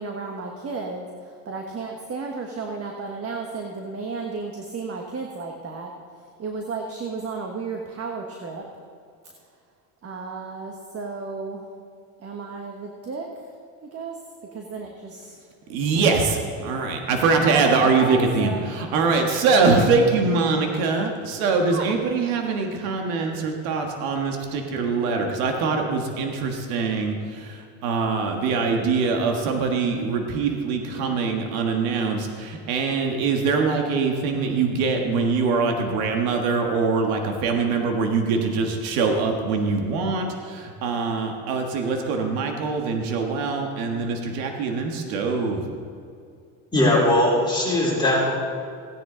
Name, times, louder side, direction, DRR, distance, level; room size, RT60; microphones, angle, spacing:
voice 1, 0.0-5.9 6.4-8.7 10.0-11.7 12.2-13.3 13.9-14.2 14.5-15.4 15.7-15.8 16.2-16.3 16.6-16.8 17.4-18.7 19.6-19.8 21.6-21.9, right 4 dB, 35° right, 2 dB, 1.4 m, -33 dB
voice 2, 15.7-45.6, right 4 dB, 85° right, 3 dB, 1.6 m, -23 dB
voice 3, 46.7-48.3, left 1 dB, 10° left, -6 dB, 3.8 m, -19 dB
17.0 x 10.0 x 3.9 m, 2.3 s
supercardioid pair, 100°, 41 cm